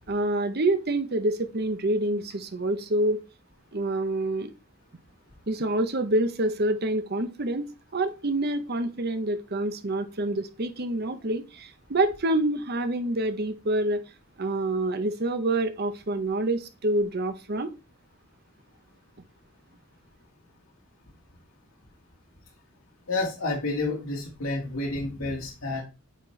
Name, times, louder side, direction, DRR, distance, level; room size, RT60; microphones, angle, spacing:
voice 1, 0.1-3.2 3.7-4.5 5.5-7.6 7.9-14.0 14.4-17.7, right 1 dB, 50° right, 9 dB, 0.8 m, -27 dB
voice 2, 23.1-25.8, left 2 dB, 85° left, -2 dB, 1.7 m, -29 dB
8.3 x 4.4 x 3.2 m, 0.29 s
head